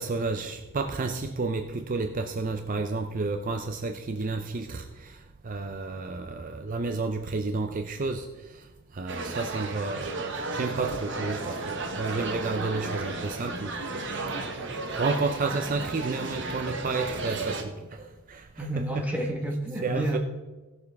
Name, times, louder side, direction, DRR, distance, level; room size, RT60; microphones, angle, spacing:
voice 1, 0.0-5.1 5.4-8.3 8.9-10.1 10.5-13.7 14.7-17.7 18.3-18.6 19.8-20.2, right 3 dB, 35° right, 0.5 m, -31 dB
sound 1, 9.1-17.6, right 3 dB, 55° right, 1.2 m, -34 dB
voice 2, 18.6-20.2, right 1 dB, 5° right, 1.3 m, -30 dB
17.5 x 6.8 x 3.5 m
head